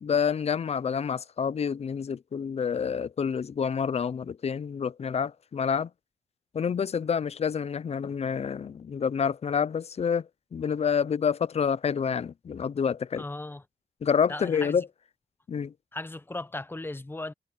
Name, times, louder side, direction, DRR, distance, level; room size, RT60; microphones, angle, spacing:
voice 1, 0.0-5.9 6.5-13.2 14.0-14.9 15.5-15.7, left 7 dB, 45° left, 0.5 m, -28 dB
voice 2, 13.2-13.6 14.3-14.8 15.9-17.3, left 2 dB, 15° left, 0.8 m, -37 dB
wide cardioid pair, 120°, 15 cm